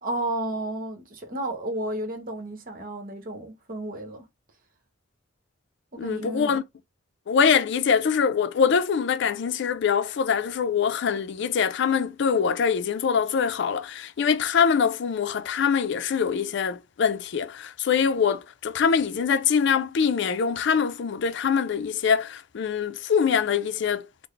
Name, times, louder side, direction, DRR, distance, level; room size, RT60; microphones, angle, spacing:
voice 1, 0.0-4.2 6.0-6.6, right 1 dB, 45° right, 0.9 m, -32 dB
voice 2, 6.0-6.6 7.3-24.1, left 6 dB, 65° left, 0.4 m, -24 dB
3.9 x 2.1 x 3.2 m
head